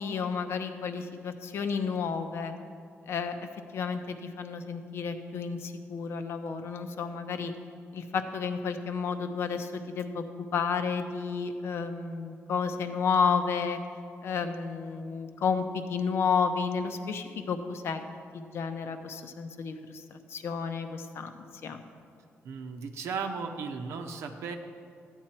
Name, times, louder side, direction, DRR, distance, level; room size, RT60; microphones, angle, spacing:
voice 1, 0.0-2.5 3.1-3.3 3.7-7.5 7.9-13.8 14.2-18.0 18.3-21.8, left 5 dB, 65° left, 8 dB, 0.8 m, -31 dB
voice 2, 22.4-24.6, right 5 dB, 85° right, 4 dB, 0.8 m, -36 dB
13.0 x 9.1 x 4.4 m, 2.3 s
cardioid pair, 130°, 5 cm